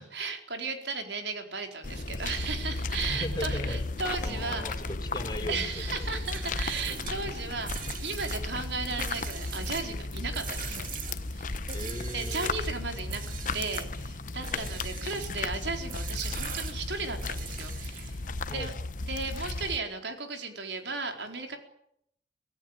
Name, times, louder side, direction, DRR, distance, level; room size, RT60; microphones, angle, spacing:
voice 1, 0.0-4.8 5.5-10.8 11.3-11.6 12.1-13.2 13.5-18.2 18.5-18.7 19.0-21.6, right 4 dB, 80° right, 5 dB, 4.3 m, -35 dB
sound 1, 1.8-19.8, left 3 dB, 45° left, 1.0 m, -35 dB
voice 2, 3.1-3.8 4.2-6.0 6.3-6.4 11.7-12.6 14.5-14.7 18.5-18.7, left 1 dB, 25° left, 5 dB, 4.5 m, -37 dB
sound 2, 6.1-12.6 13.1-13.9 14.4-15.4 15.9-18.3, right 8 dB, 50° right, 2.7 m, -42 dB
25.5 x 17.5 x 9.0 m, 0.73 s
head